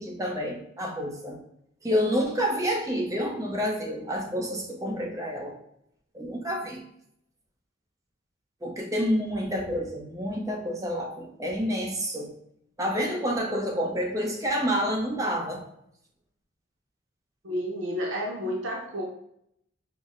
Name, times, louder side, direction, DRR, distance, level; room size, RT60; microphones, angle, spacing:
voice 1, 0.0-1.4 1.8-5.5 6.1-6.8 8.6-12.3 12.8-15.6, equal, 15° right, 0 dB, 0.6 m, -28 dB
voice 2, 17.4-19.0, equal, 80° right, -1 dB, 0.6 m, -31 dB
5.5 x 2.0 x 2.5 m, 0.73 s
head